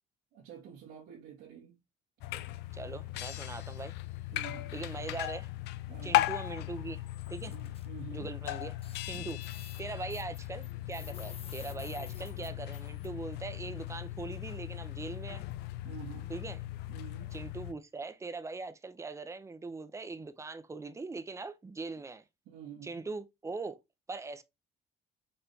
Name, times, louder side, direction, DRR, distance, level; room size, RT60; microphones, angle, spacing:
voice 1, 0.3-1.8 4.3-4.7 5.9-6.2 7.5-8.3 9.1-9.4 15.8-16.3 16.9-17.3 22.4-23.1, right 8 dB, 90° right, 1.3 m, -48 dB
sound 1, 2.2-17.7, left 16 dB, 85° left, 0.4 m, -37 dB
voice 2, 2.7-3.9 4.7-5.5 6.0-7.0 7.3-7.5 8.1-8.7 9.0-9.4 9.8-15.4 16.3-16.6 17.3-22.2 22.8-23.8 24.1-24.4, right 3 dB, 15° right, 0.5 m, -41 dB
sound 2, 7.1-7.8 8.4-8.5 8.8-13.1, left 6 dB, 35° left, 0.8 m, -52 dB
4.4 x 3.2 x 2.7 m
cardioid pair, 110°, 17 cm